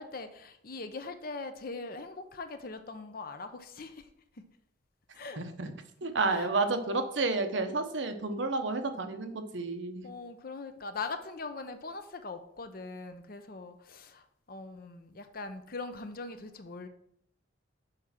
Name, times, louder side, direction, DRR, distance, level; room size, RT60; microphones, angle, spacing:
voice 1, 0.0-4.1 5.1-5.4 6.0-6.5 10.0-16.9, left 3 dB, 50° left, 9 dB, 0.7 m, -41 dB
voice 2, 5.4-5.7 6.0-10.1, right 3 dB, 75° right, 7 dB, 0.9 m, -31 dB
6.5 x 4.9 x 5.8 m, 0.73 s
head